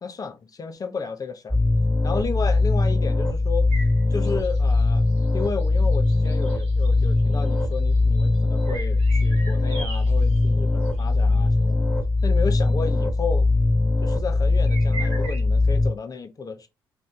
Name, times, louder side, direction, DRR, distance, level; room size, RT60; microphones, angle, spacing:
voice 1, 0.0-1.6 2.0-3.7 4.1-5.0 5.3-11.8 12.2-13.5 14.0-16.7, left 5 dB, 30° left, 0.6 m, -32 dB
sound 1, 1.5-15.9, left 2 dB, 5° left, 1.2 m, -21 dB
sound 2, 3.7-10.5 10.8-11.0 11.3-11.4 12.7-12.8 14.7-15.4, right 3 dB, 65° right, 1.0 m, -40 dB
2.7 x 2.5 x 3.5 m
figure-of-eight pair, 45°, 12 cm